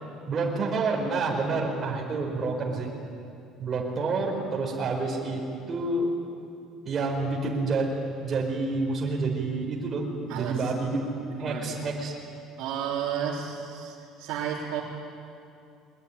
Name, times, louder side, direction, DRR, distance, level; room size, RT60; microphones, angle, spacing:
voice 1, 0.3-2.9 3.6-5.4 5.7-6.1 6.8-7.9 8.2-10.1 10.3-11.0 11.4-12.1, right 3 dB, 35° right, -1 dB, 4.5 m, -28 dB
voice 2, 10.3-10.7 11.3-11.7 12.6-14.8, right 8 dB, 75° right, -5 dB, 3.9 m, -32 dB
23.0 x 21.5 x 9.8 m, 2.6 s
cardioid pair, 115°, 0 cm